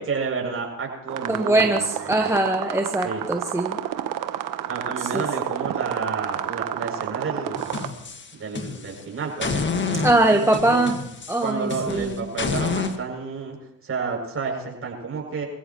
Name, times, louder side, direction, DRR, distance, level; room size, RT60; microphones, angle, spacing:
voice 1, 0.0-2.3 3.0-3.2 4.7-7.6 8.3-10.4 10.7-10.8 11.4-13.6 13.8-15.5, right 5 dB, 40° right, 0 dB, 7.5 m, -30 dB
sound 1, 1.1-7.9, right 11 dB, 70° right, 1.3 m, -30 dB
voice 2, 1.3-3.8 5.0-5.2 10.0-11.0 11.3-12.2, right 2 dB, 10° right, 3 dB, 1.4 m, -22 dB
sound 2, 7.6-9.0 9.4-13.0, left 5 dB, 35° left, 1.8 m, -29 dB
26.0 x 15.5 x 3.2 m, 0.82 s
cardioid pair, 90°, 34 cm